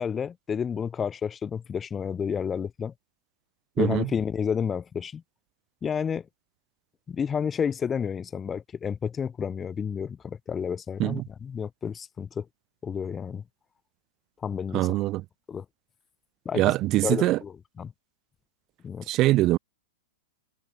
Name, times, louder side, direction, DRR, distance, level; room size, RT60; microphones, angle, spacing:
voice 1, 0.0-2.9 3.8-5.2 5.8-6.2 7.1-12.4 12.8-13.4 14.4-15.0 15.5-15.6 16.4-16.7 17.0-17.9 18.8-19.1, left 7 dB, 20° left, 3.0 m, -30 dB
voice 2, 14.7-15.2 16.5-17.4 19.1-19.6, right 17 dB, 35° right, 1.1 m, -23 dB
hypercardioid pair, 110°, 0 cm